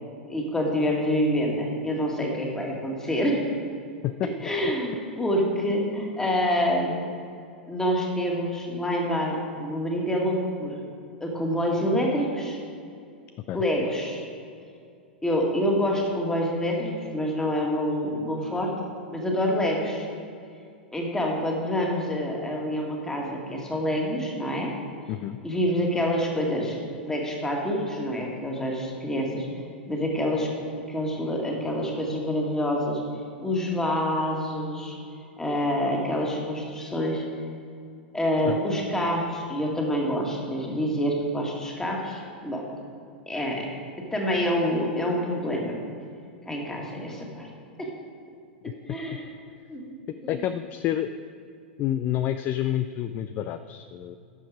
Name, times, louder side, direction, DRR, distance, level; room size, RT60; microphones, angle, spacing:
voice 1, 0.3-3.4 4.4-7.0 7.7-10.8 11.2-12.6 13.5-14.2 15.2-18.8 19.1-20.1 20.9-24.7 25.4-26.8 27.0-29.5 29.9-30.5 30.9-33.0 33.4-35.0 35.4-37.2 38.1-42.6 43.3-43.7 44.0-45.8 46.5-47.5 47.8-48.0 48.6-49.3 49.7-50.0 50.2-50.3, equal, 10° left, 0 dB, 1.9 m, -27 dB
voice 2, 50.3-51.1 51.8-54.2, left 11 dB, 35° left, 11 dB, 0.3 m, -28 dB
11.0 x 7.1 x 5.0 m, 2.4 s
figure-of-eight pair, 95°, 6 cm